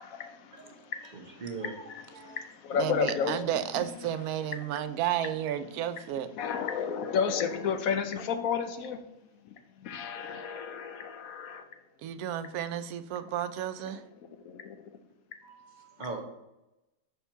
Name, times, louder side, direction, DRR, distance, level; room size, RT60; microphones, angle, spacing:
voice 1, 0.0-1.4 1.9-3.4 6.4-9.1 9.4-11.8 14.4-14.8, left 7 dB, 70° left, 8 dB, 1.1 m, -32 dB
voice 2, 1.1-1.8 2.1-2.4 15.4-16.2, right 3 dB, 35° right, 3 dB, 0.9 m, -40 dB
voice 3, 2.7-6.3 12.0-14.0, right 10 dB, 85° right, 12 dB, 1.1 m, -32 dB
6.1 x 4.5 x 5.5 m, 0.94 s
omnidirectional pair, 1.5 m